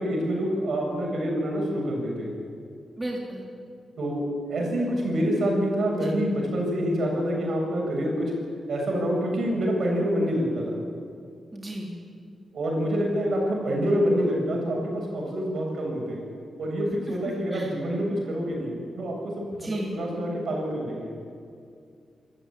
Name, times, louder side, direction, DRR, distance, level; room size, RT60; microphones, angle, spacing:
voice 1, 0.0-2.3 4.0-8.3 8.7-10.8 12.5-16.2 16.6-21.1, equal, 70° right, -1 dB, 7.7 m, -27 dB
voice 2, 3.0-3.4 6.0-6.2 11.5-11.9 17.1-17.7 19.5-20.0, right 1 dB, 20° right, -1 dB, 3.3 m, -34 dB
26.0 x 14.0 x 8.9 m, 2.3 s
cardioid pair, 90°, 0 cm